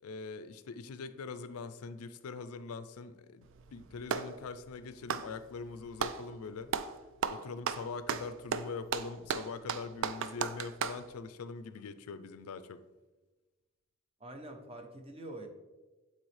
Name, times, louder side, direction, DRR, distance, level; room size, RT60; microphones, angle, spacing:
voice 1, 0.0-6.7 7.3-12.8, left 4 dB, 75° left, 12 dB, 0.4 m, -43 dB
Clapping, 3.4-4.4 5.0-6.2 6.7-6.9 7.2-11.0, right 7 dB, 60° right, 0.3 m, -35 dB
voice 2, 14.2-15.5, right 1 dB, 25° right, 5 dB, 0.7 m, -45 dB
8.7 x 4.1 x 3.2 m, 1.2 s
head